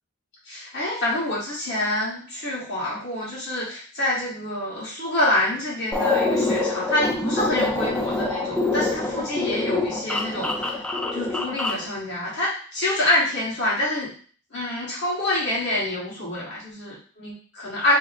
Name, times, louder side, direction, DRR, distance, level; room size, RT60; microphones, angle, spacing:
voice 1, 0.5-10.8 11.1-14.1 14.5-18.0, left 1 dB, 55° left, -8 dB, 1.6 m, -26 dB
sound 1, 5.9-11.9, left 2 dB, 5° left, 0.4 m, -25 dB
3.0 x 2.2 x 4.0 m, 0.43 s
head